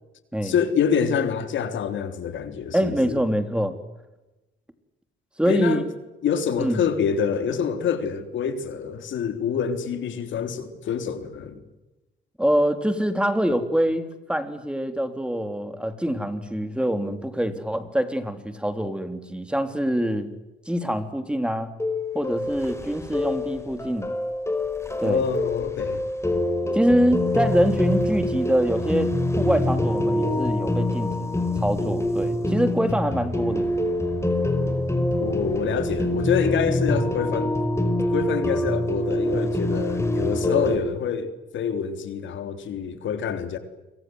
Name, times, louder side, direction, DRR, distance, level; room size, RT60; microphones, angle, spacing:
voice 1, 0.4-3.2 5.5-5.8 6.2-11.6 25.0-26.0 35.2-37.5 38.1-43.6, left 7 dB, 75° left, 3.5 m, -26 dB
voice 2, 2.7-3.8 5.4-5.8 6.6-6.9 12.4-20.3 20.6-21.7 22.1-24.1 25.0-25.2 26.7-31.4 31.6-33.7, equal, 5° right, 3.4 m, -24 dB
sound 1, 21.8-40.8, left 1 dB, 15° left, 4.8 m, -25 dB
29.5 x 24.5 x 8.0 m
cardioid pair, 90°, 20 cm